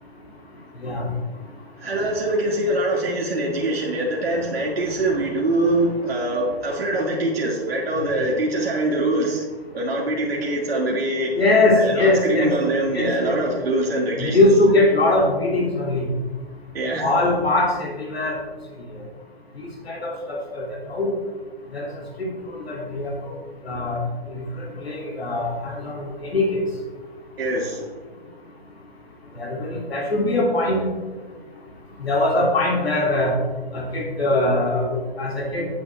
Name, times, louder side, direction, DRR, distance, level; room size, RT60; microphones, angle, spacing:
voice 1, 1.8-9.4 9.7-11.3 11.7-14.5 16.7-17.1 27.4-27.9, right 1 dB, 80° right, -4 dB, 2.2 m, -24 dB
voice 2, 11.4-12.5 12.9-13.6 14.2-16.0 17.0-18.4 19.9-21.1 21.7-21.9 22.2-23.1 23.6-24.0 24.3-26.6 29.4-30.8 32.0-33.3 33.7-35.7, left 2 dB, 90° left, -1 dB, 2.5 m, -21 dB
9.9 x 8.0 x 3.3 m, 1.3 s
hypercardioid pair, 155°, 30 cm